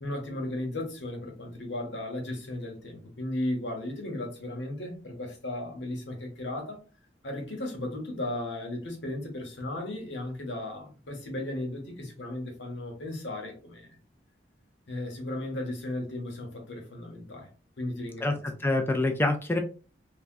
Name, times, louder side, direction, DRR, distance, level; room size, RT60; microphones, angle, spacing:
voice 1, 0.0-6.8 7.2-13.9 14.9-17.5 17.8-18.4, left 1 dB, 80° left, 1.1 m, -35 dB
voice 2, 18.2-19.6, left 2 dB, 10° left, 0.4 m, -26 dB
3.4 x 2.3 x 2.5 m
head